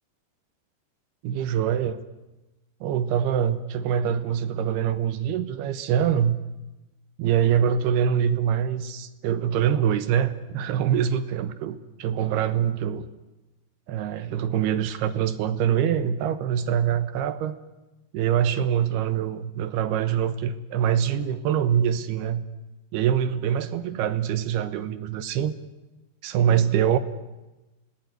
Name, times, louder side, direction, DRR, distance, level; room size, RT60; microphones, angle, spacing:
voice 1, 1.2-2.0 2.8-6.4 7.2-13.1 13.9-17.6 18.1-22.4 22.9-25.5 26.2-27.0, right 9 dB, 75° right, 12 dB, 3.0 m, -24 dB
26.5 x 19.0 x 9.6 m, 1.0 s
omnidirectional pair, 4.8 m